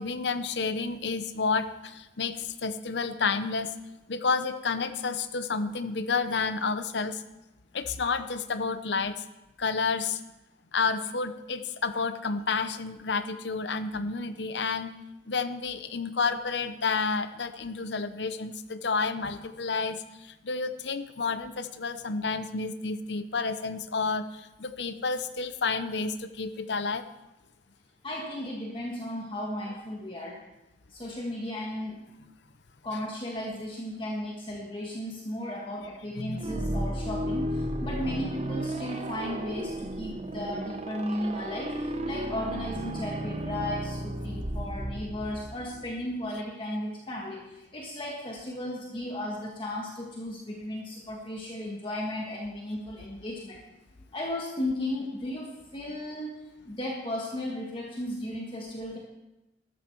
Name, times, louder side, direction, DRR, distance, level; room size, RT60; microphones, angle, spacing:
voice 1, 0.0-3.7 4.1-7.2 7.7-9.2 9.6-10.2 10.7-14.9 15.3-27.0 36.2-36.5, left 4 dB, 75° left, 11 dB, 0.8 m, -30 dB
voice 2, 28.0-30.4 30.9-32.0 32.8-53.6 54.1-56.3 56.6-59.0, left 1 dB, 30° left, -2 dB, 1.7 m, -35 dB
sound 1, 36.4-46.1, right 1 dB, 35° right, 0.9 m, -34 dB
13.0 x 13.0 x 4.7 m, 0.98 s
head